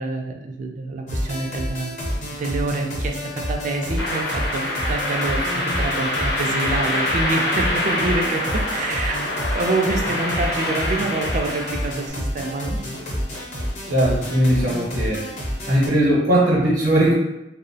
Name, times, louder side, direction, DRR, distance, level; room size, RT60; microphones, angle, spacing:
voice 1, 0.0-12.8, right 2 dB, 45° right, 2 dB, 0.3 m, -27 dB
sound 1, 1.1-15.9, equal, 45° left, 0.6 m, -29 dB
sound 2, 4.0-12.1, left 1 dB, 80° left, 0.7 m, -25 dB
voice 2, 13.9-15.2 15.7-17.1, right 1 dB, 80° right, -7 dB, 0.7 m, -19 dB
2.5 x 2.0 x 2.6 m, 0.89 s
head